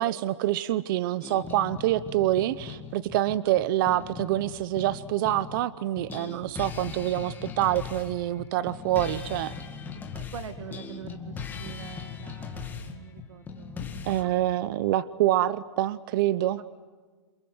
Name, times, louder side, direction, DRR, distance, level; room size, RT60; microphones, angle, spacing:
voice 1, 0.0-9.5 14.0-16.6, right 14 dB, 45° right, 17 dB, 0.8 m, -26 dB
sound 1, 1.2-5.6 6.0-14.2, left 6 dB, 10° left, 2.2 m, -39 dB
voice 2, 10.1-14.3 16.6-16.7, right 8 dB, 80° right, 9 dB, 2.1 m, -44 dB
28.5 x 26.0 x 7.9 m, 1.4 s
hypercardioid pair, 160°, 16 cm